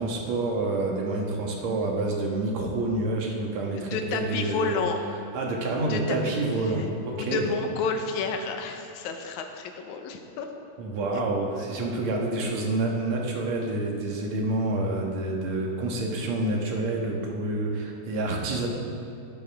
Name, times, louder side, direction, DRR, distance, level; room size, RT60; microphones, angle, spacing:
voice 1, 0.0-4.7 5.3-7.5 10.8-18.7, right 2 dB, 65° right, 0 dB, 2.6 m, -28 dB
voice 2, 3.7-5.0 5.9-6.9 7.1-10.5, left 5 dB, 75° left, 4 dB, 2.3 m, -31 dB
18.5 x 10.0 x 3.5 m, 2.7 s
omnidirectional pair, 3.5 m